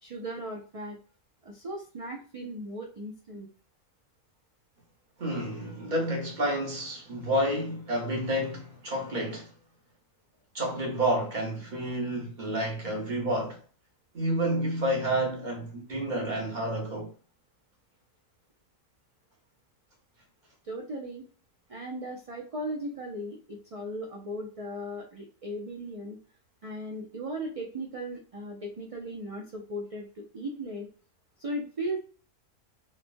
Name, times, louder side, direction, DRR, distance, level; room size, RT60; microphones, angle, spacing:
voice 1, 0.0-1.0 1.4-3.5 20.6-21.2 21.7-26.2 26.6-30.9 31.4-32.0, right 1 dB, 70° right, 0.3 m, -37 dB
voice 2, 5.2-9.5 10.5-13.6 14.1-17.1, right 1 dB, 40° right, 1.0 m, -30 dB
3.2 x 2.1 x 2.5 m
omnidirectional pair, 1.3 m